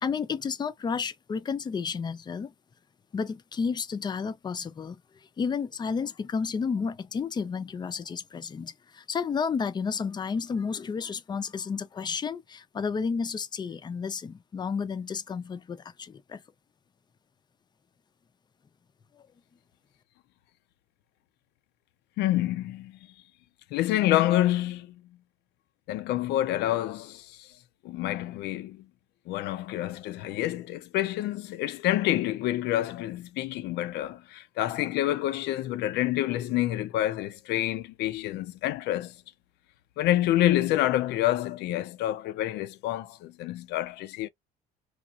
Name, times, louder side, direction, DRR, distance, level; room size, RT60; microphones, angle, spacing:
voice 1, 0.0-2.5 3.1-5.0 5.4-16.4, left 5 dB, 25° left, 0.4 m, -31 dB
voice 2, 22.2-23.0 23.7-24.9 25.9-27.5 27.8-28.8 29.3-39.1 40.0-44.3, left 14 dB, 80° left, 0.4 m, -28 dB
3.0 x 2.4 x 2.3 m
cardioid pair, 110°, 17 cm